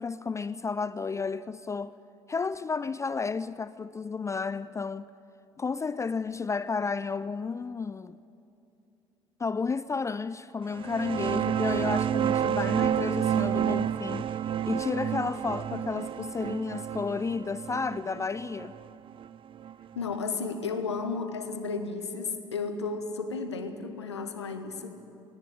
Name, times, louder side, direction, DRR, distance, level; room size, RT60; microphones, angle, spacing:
voice 1, 0.0-1.9 2.3-5.1 5.6-8.2 9.4-14.3 14.7-18.7, left 4 dB, 20° left, 0.4 m, -32 dB
sound 1, 10.7-20.0, right 9 dB, 40° right, 0.5 m, -30 dB
voice 2, 19.9-24.9, left 4 dB, 80° left, 1.2 m, -33 dB
17.5 x 17.5 x 9.7 m
figure-of-eight pair, 50°, 14 cm